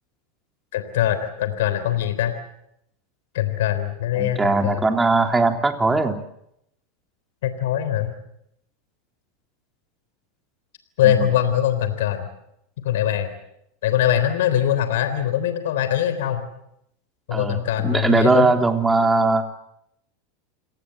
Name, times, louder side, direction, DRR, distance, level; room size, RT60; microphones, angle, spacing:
voice 1, 0.7-2.3 3.3-4.8 7.4-8.1 11.0-12.3 12.8-13.3 13.8-16.5 17.3-18.5, left 11 dB, 75° left, 11 dB, 3.5 m, -22 dB
voice 2, 4.2-6.2 11.0-11.3 17.3-19.5, right 3 dB, 10° right, 5 dB, 3.3 m, -20 dB
28.5 x 19.0 x 7.8 m, 0.77 s
hypercardioid pair, 110°, 0 cm